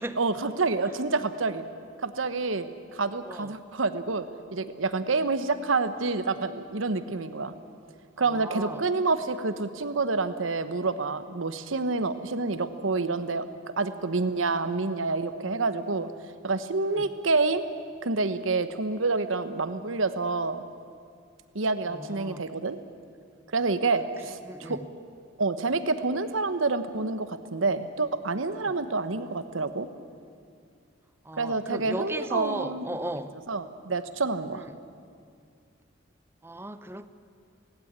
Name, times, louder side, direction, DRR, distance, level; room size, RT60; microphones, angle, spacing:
voice 1, 0.2-1.7 2.0-4.3 4.5-7.5 8.2-13.4 13.8-16.1 16.4-17.6 18.0-20.6 21.5-22.8 23.5-24.8 25.4-29.9 31.4-32.8 33.5-34.6, right 3 dB, 80° right, 11 dB, 1.1 m, -28 dB
voice 2, 8.2-8.8 16.8-17.1 21.9-22.5 23.9-24.0 24.4-24.9 28.6-28.7 31.2-33.3 34.5-34.8 36.4-37.1, right 1 dB, 10° right, 11 dB, 0.7 m, -36 dB
18.0 x 15.5 x 9.6 m, 2.3 s
head